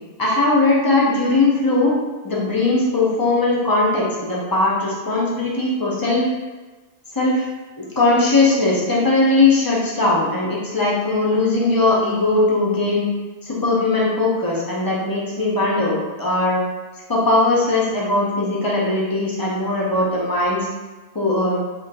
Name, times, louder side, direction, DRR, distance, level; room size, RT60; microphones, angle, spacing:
voice 1, 0.2-1.9 2.2-6.3 7.1-7.5 7.8-13.1 13.4-16.6 17.1-20.7 21.1-21.6, left 2 dB, 30° left, -5 dB, 0.4 m, -19 dB
2.4 x 2.2 x 4.0 m, 1.2 s
omnidirectional pair, 1.2 m